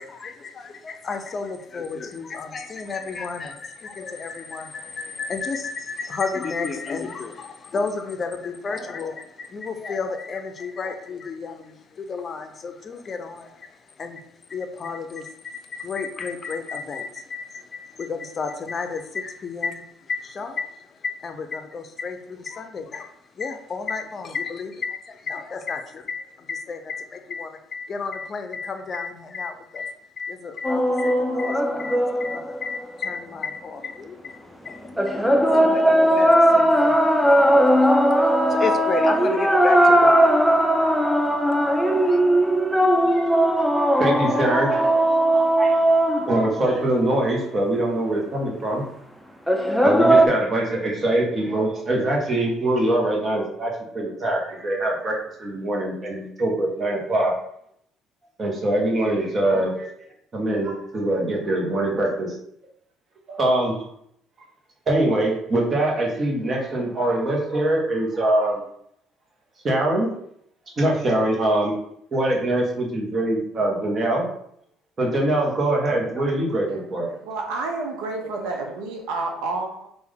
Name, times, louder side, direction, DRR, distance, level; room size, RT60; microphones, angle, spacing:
voice 1, 0.0-42.2, left 4 dB, 40° left, 7 dB, 0.5 m, -32 dB
sound 1, 30.6-33.2 35.0-47.3 49.5-50.3, right 1 dB, ahead, 0.5 m, -18 dB
voice 2, 44.0-44.9 45.3-48.8 49.8-57.3 58.4-59.9 60.3-62.3 63.3-63.8 64.9-68.6 69.6-70.1 70.8-71.7 72.1-74.2 75.0-77.1, right 1 dB, 40° right, -1 dB, 1.2 m, -23 dB
voice 3, 76.7-79.9, right 3 dB, 80° right, 2 dB, 0.5 m, -30 dB
3.3 x 2.6 x 3.6 m, 0.70 s
supercardioid pair, 65°, 0 cm